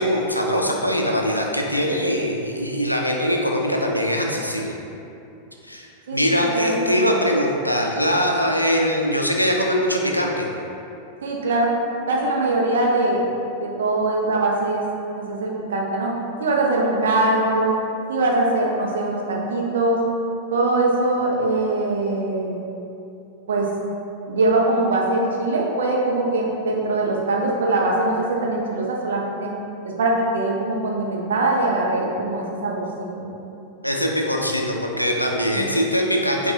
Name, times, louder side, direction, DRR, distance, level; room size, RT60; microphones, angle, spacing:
voice 1, 0.0-4.8 5.6-10.5 33.8-36.5, equal, 90° left, 0 dB, 0.4 m, -22 dB
voice 2, 11.2-11.7 12.1-13.2 13.6-14.8 15.2-16.1 16.4-17.7 18.1-20.0 20.5-22.6 23.5-23.7 24.3-29.5 29.8-32.8 33.1-33.3 35.5-35.6, right 2 dB, 65° right, -2 dB, 0.6 m, -22 dB
5.2 x 2.3 x 2.7 m, 2.8 s
figure-of-eight pair, 90°, 0 cm